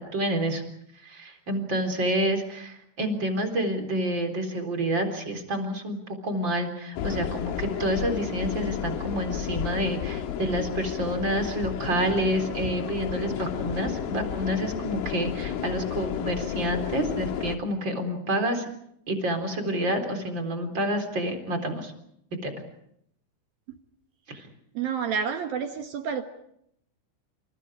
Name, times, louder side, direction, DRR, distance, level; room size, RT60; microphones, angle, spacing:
voice 1, 0.1-0.6 1.0-18.7 19.1-21.9 22.4-22.5 24.3-24.5, right 1 dB, 25° right, 5 dB, 3.8 m, -28 dB
sound 1, 7.0-17.6, left 9 dB, 90° left, 4.3 m, -32 dB
voice 2, 24.7-26.2, right 7 dB, 65° right, 6 dB, 2.6 m, -29 dB
29.0 x 28.5 x 4.9 m, 0.73 s
omnidirectional pair, 5.6 m